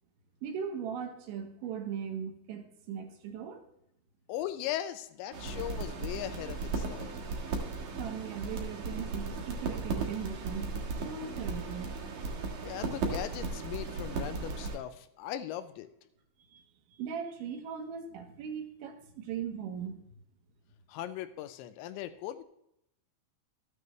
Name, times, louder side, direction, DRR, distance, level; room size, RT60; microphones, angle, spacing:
voice 1, 0.4-3.6 8.0-10.7 11.0-11.9 16.5-16.6 17.0-20.0, right 7 dB, 75° right, 4 dB, 3.6 m, -39 dB
voice 2, 4.3-7.2 12.6-15.9 20.9-22.4, left 12 dB, 85° left, 10 dB, 2.8 m, -39 dB
sound 1, 5.3-14.8, right 3 dB, 60° right, 2.3 m, -36 dB
13.5 x 9.5 x 3.2 m, 0.78 s
omnidirectional pair, 5.4 m